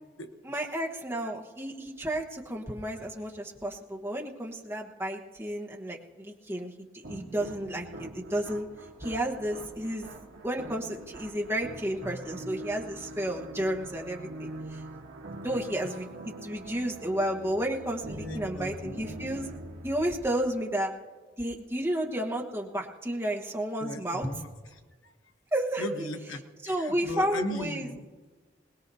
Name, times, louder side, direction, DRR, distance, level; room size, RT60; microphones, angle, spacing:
voice 1, 0.4-8.7 9.0-10.1 10.4-14.8 15.4-19.5 19.8-20.9 21.4-24.3 25.5-26.1 26.6-27.9, right 1 dB, 10° right, -1 dB, 1.2 m, -32 dB
sound 1, 7.0-20.7, right 1 dB, 75° right, 1.3 m, -43 dB
voice 2, 18.2-19.0 23.8-25.1 25.8-26.4 26.6-28.0, left 1 dB, 80° left, 5 dB, 1.1 m, -38 dB
21.5 x 20.0 x 2.7 m, 1.4 s
head